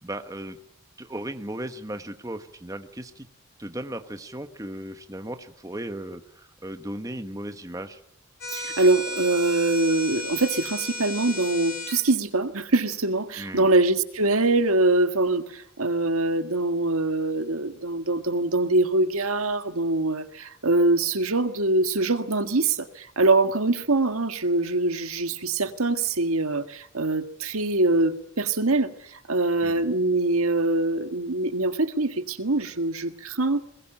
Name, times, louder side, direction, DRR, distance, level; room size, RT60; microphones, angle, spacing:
voice 1, 0.0-0.6 1.0-3.3 3.6-8.0 13.4-13.7 29.6-29.8, right 1 dB, 15° right, 8 dB, 1.3 m, -36 dB
sound 1, 8.4-12.0, left 1 dB, 45° left, 5.0 m, -34 dB
voice 2, 8.5-33.6, right 2 dB, 90° right, 9 dB, 1.7 m, -23 dB
22.0 x 20.0 x 8.9 m, 0.71 s
head